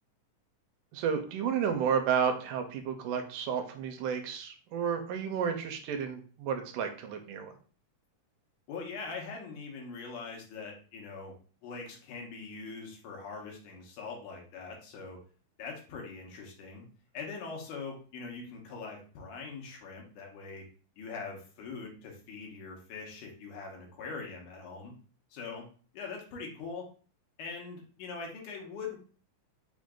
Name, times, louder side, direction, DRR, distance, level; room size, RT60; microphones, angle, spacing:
voice 1, 0.9-7.5, right 7 dB, 80° right, 6 dB, 2.2 m, -31 dB
voice 2, 8.7-11.3 11.6-15.2 15.6-16.9 17.1-20.7 21.0-24.9 25.3-25.7 25.9-26.9 27.4-29.0, left 4 dB, 75° left, 0 dB, 2.5 m, -42 dB
5.7 x 2.5 x 3.7 m, 0.40 s
omnidirectional pair, 3.7 m